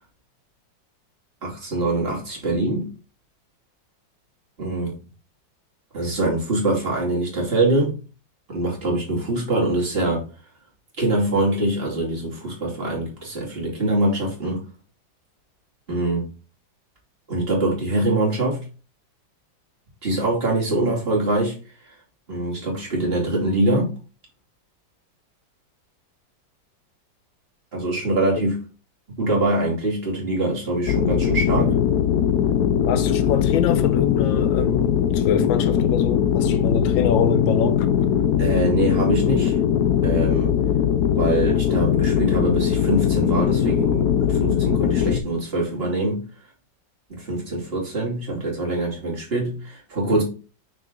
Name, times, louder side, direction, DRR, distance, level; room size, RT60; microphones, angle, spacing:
voice 1, 1.4-2.9 4.6-4.9 5.9-8.0 8.5-10.3 11.0-14.6 15.9-16.3 17.3-18.7 20.0-22.0 22.3-24.0 27.7-28.6 29.2-31.8 38.4-39.6 40.0-40.5 41.2-46.2 47.1-50.2, right 2 dB, 30° right, 2.6 m, -24 dB
sound 1, 30.9-45.2, left 9 dB, 70° left, 0.9 m, -20 dB
voice 2, 32.8-37.9, left 7 dB, 85° left, 1.5 m, -25 dB
6.1 x 5.1 x 3.7 m
omnidirectional pair, 2.1 m